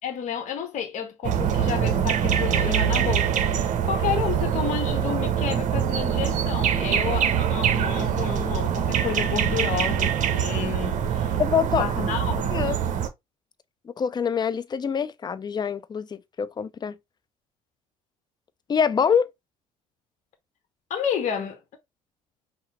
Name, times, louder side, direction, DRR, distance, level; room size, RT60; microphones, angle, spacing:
voice 1, 0.0-11.4 11.7-12.7 20.9-21.6, left 8 dB, 45° left, 0.9 m, -31 dB
sound 1, 1.2-13.1, right 9 dB, 45° right, 0.7 m, -24 dB
voice 2, 11.4-11.8 12.5-12.7 14.0-17.0 18.7-19.3, left 7 dB, 25° left, 0.5 m, -25 dB
5.6 x 2.0 x 4.1 m
figure-of-eight pair, 55°, 18 cm